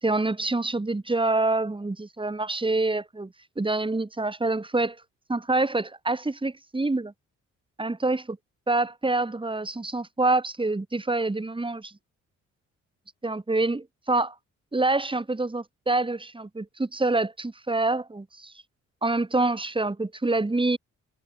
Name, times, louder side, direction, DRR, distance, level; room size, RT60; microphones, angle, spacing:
voice 1, 0.0-5.0 5.3-7.1 7.8-8.2 8.7-11.9 13.2-14.3 14.7-18.5 19.0-20.8, right 2 dB, 15° right, 5.8 m, -26 dB
cardioid pair, 90°, 30 cm